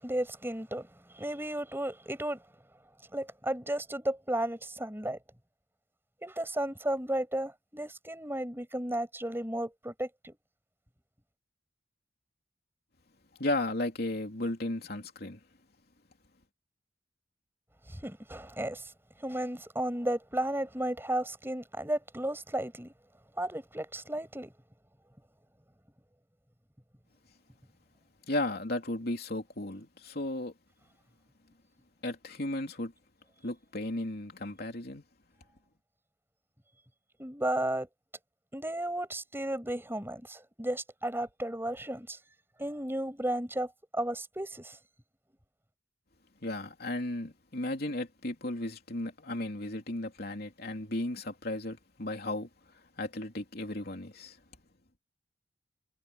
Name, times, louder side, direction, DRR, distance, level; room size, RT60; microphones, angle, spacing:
voice 1, 0.0-2.4 3.1-5.2 6.2-10.4 17.9-18.9 19.2-22.9 23.4-24.5 37.2-37.9 38.5-42.2 42.6-44.8, right 1 dB, 15° right, 7.6 m, -34 dB
voice 2, 13.4-15.4 28.3-30.5 32.0-32.9 33.4-35.0 46.4-54.4, left 1 dB, 55° left, 3.2 m, -35 dB
head